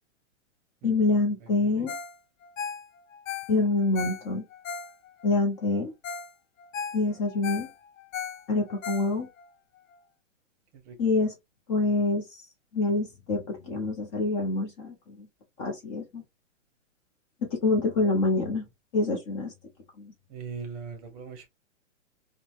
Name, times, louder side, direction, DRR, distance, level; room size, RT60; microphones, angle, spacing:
voice 1, 0.8-1.9 3.5-4.4 5.2-5.9 6.9-7.7 8.5-9.3 11.0-11.3 11.7-12.2 12.7-15.3 15.6-16.2 17.5-18.7 18.9-19.5 20.0-20.1, left 3 dB, 25° left, 0.5 m, -26 dB
voice 2, 1.4-1.9 10.7-11.0 20.3-21.5, right 5 dB, 30° right, 0.8 m, -40 dB
Ringtone, 1.9-2.2 2.4-5.3 5.7-5.8 6.0-6.3 6.6-9.5 9.9-10.0, left 7 dB, 85° left, 0.6 m, -37 dB
2.6 x 2.1 x 3.0 m
hypercardioid pair, 140°, 38 cm